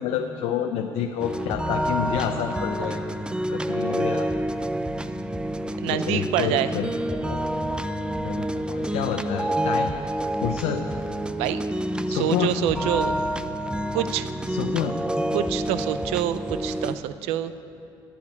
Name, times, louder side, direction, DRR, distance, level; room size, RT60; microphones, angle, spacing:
voice 1, 0.0-3.0 3.5-4.3 5.8-6.9 7.2-7.4 8.2-9.9 10.4-10.8 12.1-12.6 14.5-15.0, left 9 dB, 80° left, 4 dB, 0.7 m, -28 dB
sound 1, 1.2-17.0, right 1 dB, 10° right, 0.5 m, -28 dB
voice 2, 5.8-6.7 11.4-11.6 12.1-13.2 13.9-14.3 15.3-17.5, right 11 dB, 85° right, 12 dB, 0.5 m, -26 dB
10.5 x 7.6 x 9.7 m, 2.7 s
supercardioid pair, 90°, 10 cm